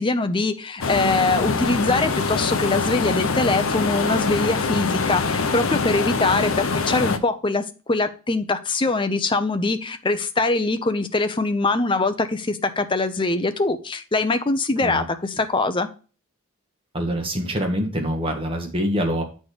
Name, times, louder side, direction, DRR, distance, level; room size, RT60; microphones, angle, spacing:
voice 1, 0.0-15.9, left 3 dB, 25° left, 9 dB, 0.6 m, -23 dB
sound 1, 0.8-7.2, left 4 dB, 75° left, 0.7 m, -24 dB
voice 2, 16.9-19.2, equal, 25° right, 2 dB, 1.5 m, -25 dB
8.4 x 4.3 x 5.0 m, 0.36 s
head